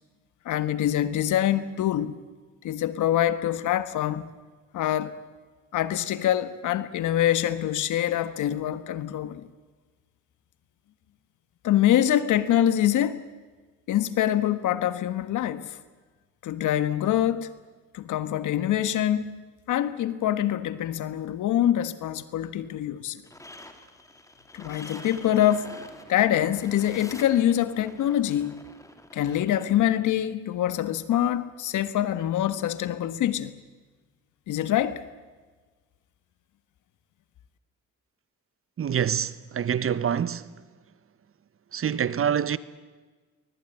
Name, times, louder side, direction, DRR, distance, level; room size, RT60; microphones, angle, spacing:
voice 1, 0.4-2.2 2.6-4.3 4.7-5.2 5.7-9.5 11.6-13.3 13.9-15.8 16.4-17.5 17.9-19.3 19.7-23.2 24.5-25.7 26.1-28.6 29.1-33.6 34.5-35.0, left 11 dB, 80° left, 1.6 m, -25 dB
sound 1, 23.2-29.7, left 1 dB, 10° left, 2.9 m, -46 dB
voice 2, 38.8-40.4 41.7-42.6, right 8 dB, 45° right, 1.2 m, -26 dB
24.0 x 20.0 x 9.3 m
cardioid pair, 90°, 30 cm